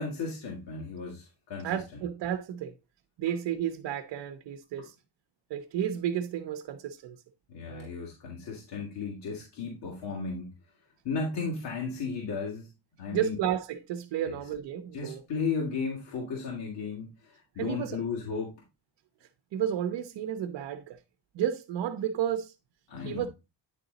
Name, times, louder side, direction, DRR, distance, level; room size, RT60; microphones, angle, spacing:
voice 1, 0.0-1.8 7.5-10.5 11.0-12.7 13.0-13.4 14.3-14.4 14.9-17.1 17.6-18.6 22.9-23.3, left 4 dB, 70° left, 2.3 m, -34 dB
voice 2, 1.6-2.7 3.2-4.9 5.5-7.2 7.7-7.9 13.1-15.2 17.6-18.0 19.5-21.0 21.3-22.5 23.0-23.3, right 10 dB, 70° right, 0.8 m, -32 dB
9.9 x 4.0 x 3.9 m
cardioid pair, 175°, 43 cm